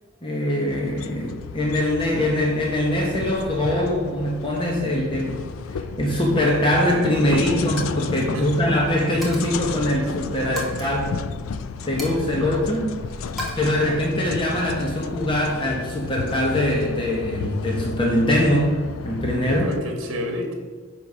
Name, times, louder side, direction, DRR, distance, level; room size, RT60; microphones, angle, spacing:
voice 1, 0.2-11.1 11.8-12.9 13.6-18.8 19.0-19.7, left 1 dB, 25° left, -1 dB, 1.1 m, -22 dB
sound 1, 0.7-19.8, left 5 dB, 80° left, 0.4 m, -33 dB
Coin (dropping), 7.0-7.3 7.6-7.9 8.2-8.5 9.2-9.7 10.6-10.9 12.0-12.9 13.4-13.5, equal, ahead, 1.4 m, -36 dB
voice 2, 8.3-8.7 12.4-12.5 19.4-20.5, left 1 dB, 65° right, 3 dB, 1.4 m, -30 dB
9.8 x 3.3 x 5.5 m, 1.5 s
head